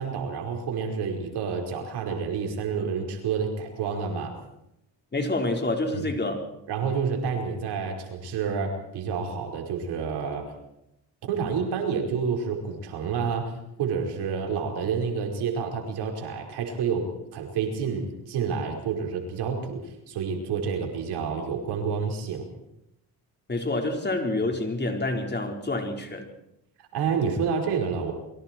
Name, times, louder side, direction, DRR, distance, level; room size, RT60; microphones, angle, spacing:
voice 1, 0.0-4.3 5.9-6.1 6.7-10.5 11.2-13.5 13.8-19.8 20.1-22.5 26.9-28.1, right 6 dB, 85° right, 2 dB, 5.0 m, -29 dB
voice 2, 5.1-6.5 23.5-26.3, left 2 dB, 25° left, 3 dB, 4.7 m, -28 dB
29.0 x 23.5 x 4.6 m, 0.83 s
cardioid pair, 80°, 39 cm